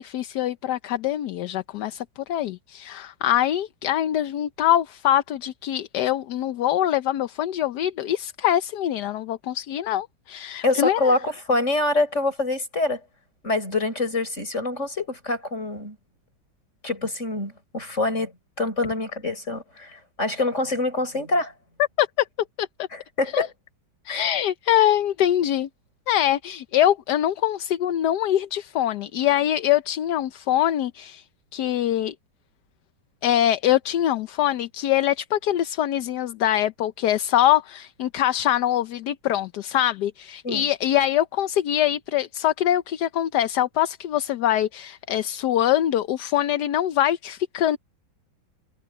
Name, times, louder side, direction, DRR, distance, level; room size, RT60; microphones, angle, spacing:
voice 1, 0.0-11.1 22.0-22.3 22.6-22.7 23.3-23.5 24.0-25.7 26.1-31.2 31.5-32.1 33.2-47.8, left 12 dB, 65° left, 1.2 m, -23 dB
voice 2, 10.6-13.0 13.4-16.0 16.8-18.3 18.6-21.5 22.9-23.5 24.1-24.3 40.4-40.7, left 2 dB, 35° left, 7.2 m, -25 dB
omnidirectional pair, 2.1 m